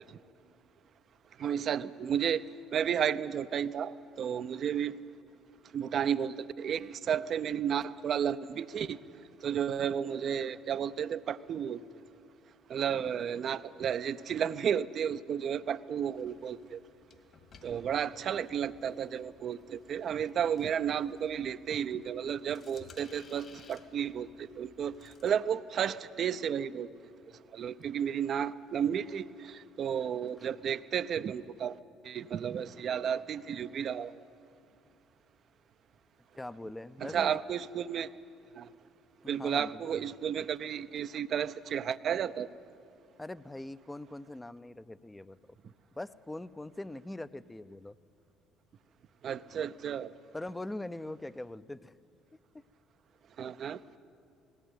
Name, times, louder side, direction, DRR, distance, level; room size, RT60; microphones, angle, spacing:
voice 1, 1.4-2.4 2.7-4.9 5.7-9.0 9.4-11.8 12.7-16.8 17.6-26.9 27.5-31.8 32.0-34.1 37.0-38.1 38.6-38.7 39.3-42.5 49.2-50.1 53.4-53.8, right 8 dB, 50° right, 14 dB, 0.6 m, -32 dB
sound 1, 16.0-25.3, left 4 dB, 45° left, 2.4 m, -59 dB
voice 2, 36.4-37.4 39.2-39.8 43.2-48.0 50.3-51.9, left 2 dB, 15° left, 15 dB, 0.6 m, -42 dB
19.0 x 16.5 x 9.3 m, 2.5 s
hypercardioid pair, 55°, 0 cm